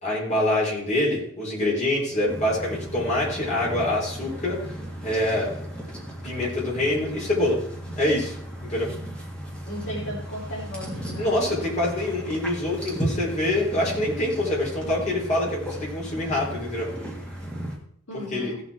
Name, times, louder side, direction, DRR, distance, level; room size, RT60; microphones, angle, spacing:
voice 1, 0.0-4.6 5.0-5.5 6.2-7.6 8.0-8.4 8.6-8.9 11.2-16.9 18.1-18.5, left 1 dB, 35° left, -4 dB, 4.2 m, -25 dB
sound 1, 2.3-17.8, right 1 dB, 5° left, 1.8 m, -35 dB
voice 2, 9.7-11.3 18.1-18.6, equal, 75° left, -4 dB, 4.0 m, -35 dB
16.0 x 6.7 x 4.4 m, 0.66 s
head